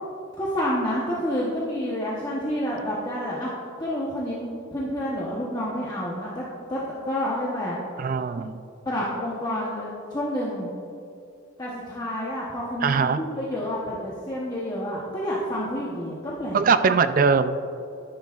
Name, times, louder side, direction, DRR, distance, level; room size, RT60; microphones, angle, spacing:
voice 1, 0.4-3.5 3.8-4.4 4.7-6.8 7.1-7.8 8.8-10.7 11.6-16.6, equal, 20° left, -6 dB, 1.0 m, -29 dB
voice 2, 8.0-8.6 12.8-13.2 16.5-17.6, right 5 dB, 40° right, 11 dB, 0.4 m, -21 dB
12.0 x 10.5 x 2.4 m, 2.7 s
head